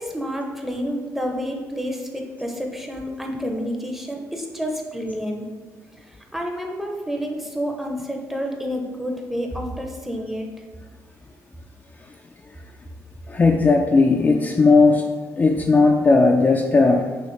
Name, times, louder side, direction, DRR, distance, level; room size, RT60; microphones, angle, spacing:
voice 1, 0.0-5.5 6.0-10.5, equal, 5° right, 1 dB, 0.7 m, -29 dB
voice 2, 13.3-15.1 15.4-17.1, left 3 dB, 25° left, 2 dB, 0.4 m, -16 dB
6.0 x 2.7 x 3.2 m, 1.5 s
cardioid pair, 95°, 6 cm